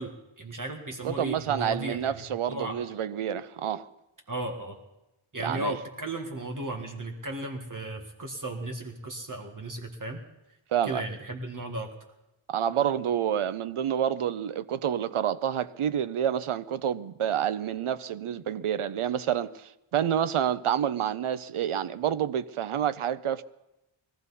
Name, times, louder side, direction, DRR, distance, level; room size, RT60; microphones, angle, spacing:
voice 1, 0.0-2.8 4.3-4.8 5.3-10.2 10.8-11.9, right 1 dB, 40° right, 1.7 m, -35 dB
voice 2, 1.0-3.9 5.4-5.8 10.7-11.0 12.5-23.4, right 9 dB, 80° right, 0.8 m, -28 dB
22.0 x 14.5 x 4.2 m
wide cardioid pair, 135°, 50 cm